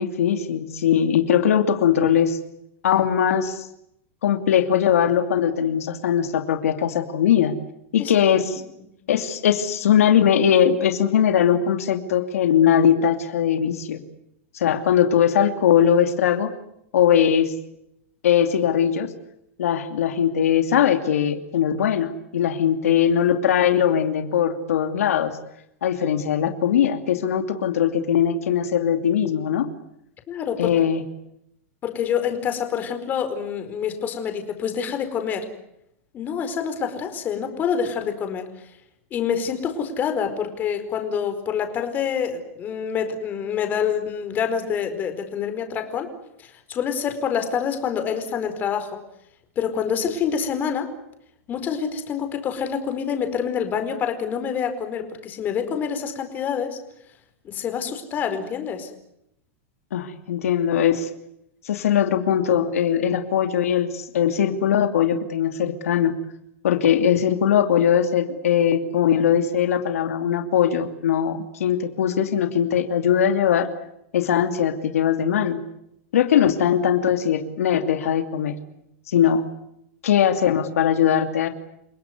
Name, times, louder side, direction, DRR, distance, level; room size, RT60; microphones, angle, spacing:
voice 1, 0.0-2.4 2.8-3.7 4.2-7.5 7.9-8.6 9.1-14.0 14.5-16.5 16.9-17.5 18.2-19.1 19.6-25.4 25.8-29.7 30.6-31.0 59.9-61.1 61.6-66.2 66.6-73.7 74.1-75.6 76.1-78.6 79.1-79.5 80.0-81.5, left 9 dB, 85° left, 7 dB, 2.7 m, -20 dB
voice 2, 30.3-30.7 31.8-35.5 36.1-38.7 39.1-46.1 46.4-49.0 49.6-50.9 51.5-56.8 57.4-58.9, left 7 dB, 25° left, 7 dB, 4.7 m, -26 dB
29.5 x 18.0 x 9.5 m, 0.79 s
supercardioid pair, 150°, 8 cm